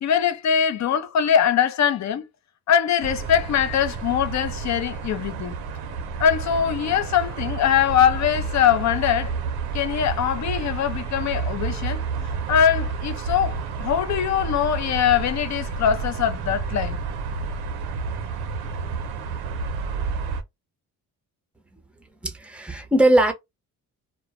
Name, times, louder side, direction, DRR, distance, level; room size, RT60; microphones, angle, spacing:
voice 1, 0.0-2.3 2.7-5.6 6.2-9.3 9.7-12.0 12.5-17.0, left 8 dB, 45° left, 0.5 m, -22 dB
sound 1, 3.0-20.4, right 5 dB, 90° right, 0.6 m, -30 dB
voice 2, 22.2-23.3, right 1 dB, 5° right, 0.6 m, -19 dB
2.2 x 2.1 x 2.7 m
cardioid pair, 80°, 38 cm